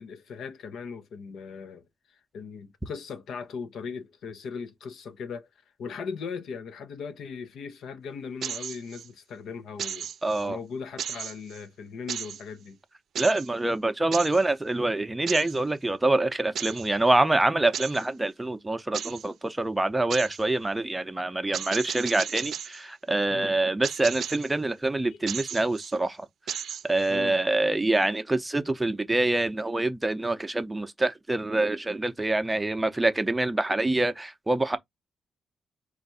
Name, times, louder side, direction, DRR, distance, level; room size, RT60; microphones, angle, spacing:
voice 1, 0.0-1.9 2.3-5.5 5.8-10.1 10.4-12.8 23.3-23.5 25.1-25.2 27.1-27.4, left 5 dB, 75° left, 0.8 m, -38 dB
sound 1, 8.4-9.1 9.8-10.4 11.0-11.6 12.1-12.4 13.2-13.5 14.1-14.4 15.3-15.6 16.6-16.9 17.7-18.1 18.9-19.3 20.1-20.4 21.5-22.8 23.8-24.5 25.3-25.9 26.5-27.1, right 9 dB, 70° right, 0.5 m, -35 dB
voice 2, 10.2-10.6 13.2-26.3 26.8-34.8, right 2 dB, 10° right, 0.6 m, -26 dB
4.5 x 2.5 x 4.0 m
cardioid pair, 115°, 0 cm